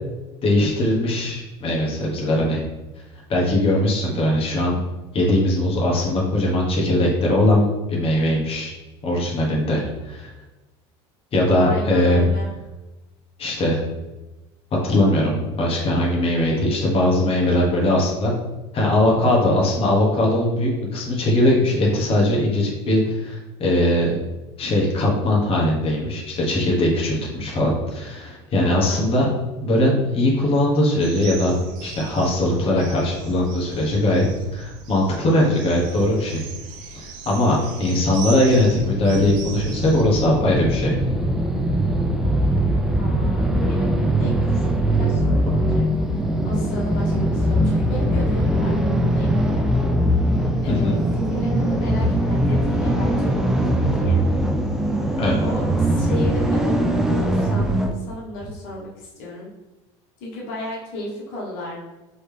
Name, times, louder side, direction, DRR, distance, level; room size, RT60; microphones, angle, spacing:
voice 1, 0.4-2.6 3.3-4.7 5.1-8.7 9.0-10.3 11.3-12.3 13.4-13.8 14.8-18.3 18.7-24.2 24.6-29.3 29.6-31.6 31.8-34.2 34.5-36.4 36.9-41.0 45.2-45.3 50.7-51.0 55.2-55.4, left 1 dB, 40° left, -3 dB, 1.4 m, -20 dB
voice 2, 11.6-12.5 28.6-29.0 43.0-45.9 46.4-49.6 50.6-51.0 51.3-54.3 55.4-59.5 60.2-61.9, left 1 dB, 70° left, -4 dB, 1.3 m, -34 dB
sound 1, 31.0-40.0, right 5 dB, 70° right, 0.7 m, -38 dB
sound 2, 38.4-57.9, right 1 dB, 5° right, 0.5 m, -21 dB
4.2 x 3.1 x 3.5 m, 1.1 s
supercardioid pair, 105°, 15 cm